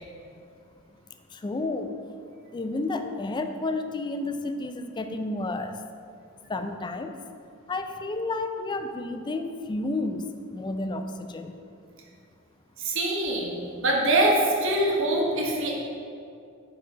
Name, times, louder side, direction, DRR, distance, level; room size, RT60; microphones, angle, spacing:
voice 1, 1.3-2.0 2.5-5.8 6.5-7.1 7.7-11.6, left 2 dB, 20° left, 7 dB, 0.3 m, -31 dB
voice 2, 12.8-15.7, right 1 dB, 65° right, -1 dB, 1.2 m, -24 dB
6.2 x 4.6 x 4.6 m, 2.4 s
head